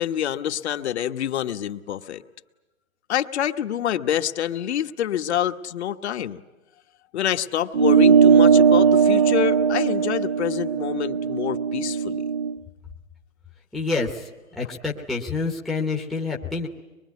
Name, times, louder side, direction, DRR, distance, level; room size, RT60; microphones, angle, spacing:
voice 1, 0.0-2.2 3.1-6.4 7.1-12.2, left 10 dB, 55° left, 7 dB, 1.3 m, -27 dB
sound 1, 7.7-12.5, right 6 dB, 35° right, 0.8 m, -18 dB
voice 2, 13.7-14.3 14.6-16.7, left 4 dB, ahead, -2 dB, 0.8 m, -27 dB
24.5 x 22.5 x 9.4 m, 1.1 s
hypercardioid pair, 160°, 40 cm